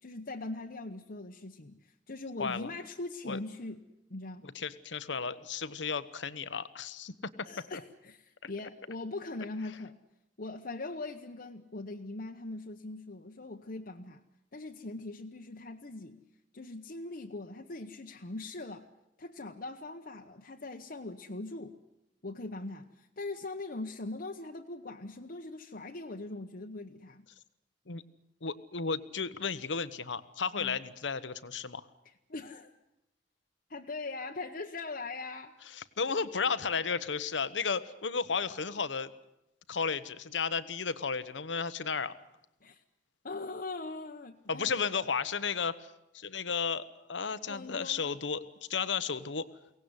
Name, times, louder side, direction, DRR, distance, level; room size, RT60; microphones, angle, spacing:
voice 1, 0.0-3.8 4.1-4.4 7.4-10.0 10.4-14.2 14.5-16.3 16.5-18.9 19.2-21.7 22.2-27.3 30.6-30.8 32.3-32.7 33.7-35.5 42.6-42.8 43.2-44.8 47.5-48.1, left 2 dB, 55° left, 1 dB, 1.0 m, -41 dB
voice 2, 2.4-2.7 3.3-3.4 4.4-7.1 7.4-7.5 27.9-28.0 28.4-31.9 35.7-39.1 39.7-42.1 44.5-48.4 48.7-49.5, left 5 dB, 85° left, 14 dB, 1.1 m, -33 dB
23.5 x 18.0 x 9.7 m, 0.88 s
head